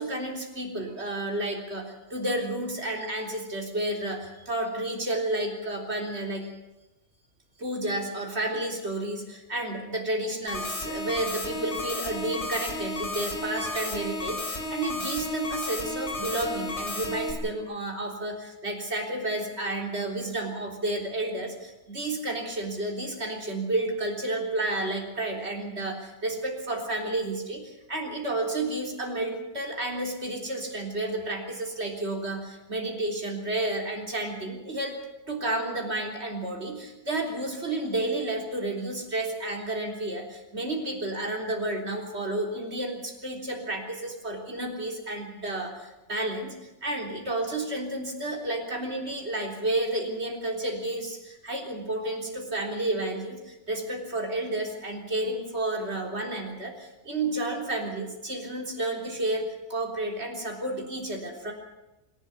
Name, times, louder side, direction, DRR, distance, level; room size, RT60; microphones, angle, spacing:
voice 1, 0.0-6.5 7.6-35.0 35.3-46.5 46.8-59.4 59.7-61.5, right 2 dB, 45° right, 1 dB, 4.0 m, -31 dB
sound 1, 10.5-17.3, left 2 dB, 50° left, 4.3 m, -33 dB
25.5 x 12.0 x 9.7 m, 0.99 s
omnidirectional pair, 1.5 m